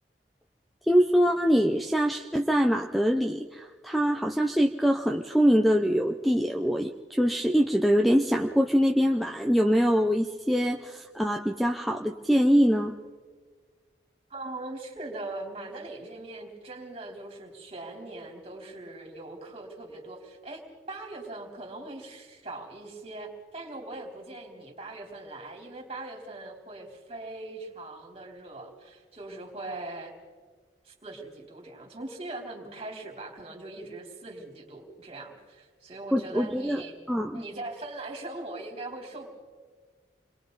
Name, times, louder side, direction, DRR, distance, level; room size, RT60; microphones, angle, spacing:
voice 1, 0.9-12.9 36.1-37.4, equal, ahead, 1 dB, 0.7 m, -24 dB
voice 2, 14.3-30.1 30.8-37.0 37.3-39.3, right 2 dB, 35° right, 1 dB, 3.8 m, -41 dB
29.0 x 22.5 x 4.1 m, 1.5 s
head